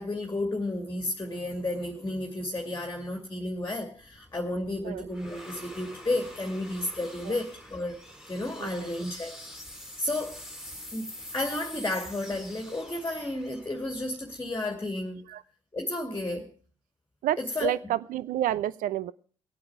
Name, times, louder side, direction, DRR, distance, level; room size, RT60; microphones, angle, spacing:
voice 1, 0.0-8.0 8.3-9.4 10.0-10.4 10.9-15.2 15.7-16.5 17.4-17.7, left 1 dB, 15° left, 4 dB, 2.3 m, -32 dB
sound 1, 3.6-14.9, equal, 5° right, 2.4 m, -46 dB
voice 2, 8.6-8.9 15.3-15.4 17.2-19.1, right 13 dB, 60° right, 18 dB, 0.7 m, -30 dB
19.0 x 8.7 x 4.8 m, 0.42 s
hypercardioid pair, 55°, 16 cm